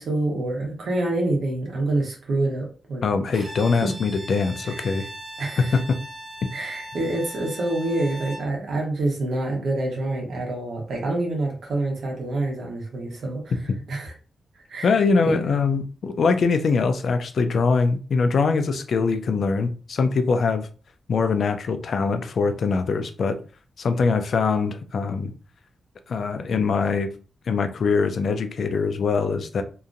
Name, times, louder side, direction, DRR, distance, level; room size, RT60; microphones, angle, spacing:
voice 1, 0.0-3.0 3.3-3.4 3.8-3.9 4.7-4.8 5.4-5.8 6.5-13.5 13.9-14.1 14.7-15.0 15.2-15.4, right 2 dB, 80° right, 1.1 m, -27 dB
voice 2, 3.0-5.1 5.6-6.0 14.8-20.7 21.1-23.4 23.8-25.3 26.1-27.1 27.5-29.6, left 4 dB, 65° left, 0.4 m, -22 dB
Bowed string instrument, 3.3-8.5, right 1 dB, 35° right, 1.2 m, -39 dB
2.8 x 2.5 x 2.5 m
wide cardioid pair, 110°, 0 cm